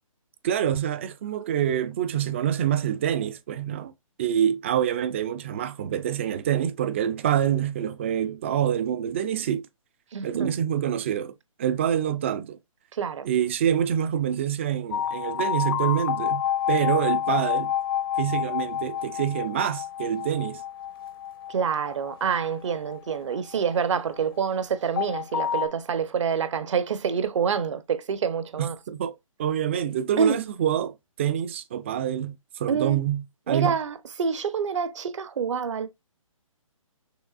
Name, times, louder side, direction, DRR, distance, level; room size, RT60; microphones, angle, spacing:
voice 1, 0.4-3.9 4.2-9.7 10.2-12.6 13.2-16.4 16.7-17.7 18.2-20.6 28.6-29.1 29.4-33.8, right 10 dB, 20° right, 0.4 m, -26 dB
voice 2, 10.1-10.6 12.9-13.3 21.5-28.8 30.2-30.4 32.7-33.0 33.5-35.9, right 6 dB, 60° right, 0.8 m, -27 dB
sound 1, 14.9-24.0 25.0-25.7, left 10 dB, 40° left, 0.6 m, -29 dB
6.1 x 3.2 x 2.4 m
hypercardioid pair, 155°, 18 cm